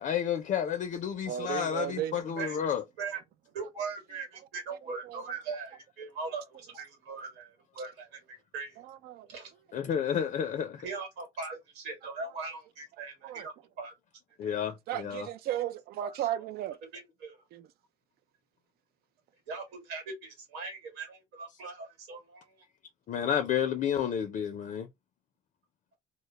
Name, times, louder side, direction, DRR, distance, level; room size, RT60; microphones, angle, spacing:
voice 1, 0.0-2.8 9.7-10.8 14.4-15.3 23.1-24.9, left 8 dB, 50° left, 0.4 m, -31 dB
voice 2, 1.3-2.2 5.0-5.2 8.8-9.3 13.2-13.5 14.9-16.8 17.5-17.7, right 12 dB, 70° right, 0.4 m, -35 dB
voice 3, 2.4-3.2 3.5-8.8 9.3-9.5 10.8-13.9 16.0-16.3 16.9-17.4 19.5-22.5, right 4 dB, 85° right, 1.3 m, -40 dB
2.1 x 2.0 x 2.9 m
cardioid pair, 110°, 17 cm